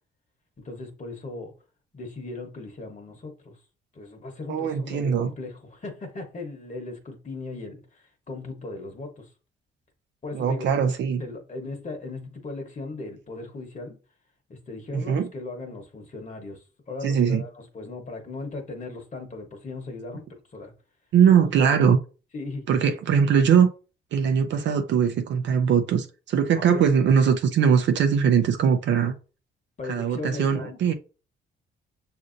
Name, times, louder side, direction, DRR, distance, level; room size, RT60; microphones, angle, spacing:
voice 1, 0.6-1.5 1.9-3.6 3.9-9.3 10.2-10.7 11.2-14.0 14.5-20.7 21.3-21.5 22.3-22.7 26.5-26.8 29.8-30.9, left 3 dB, 40° left, 1.1 m, -38 dB
voice 2, 4.5-5.3 10.3-11.2 14.9-15.3 17.0-17.4 21.1-22.0 22.7-23.7 24.1-29.1 29.9-30.9, right 7 dB, 65° right, 0.5 m, -21 dB
6.4 x 2.6 x 2.5 m
cardioid pair, 90°, 20 cm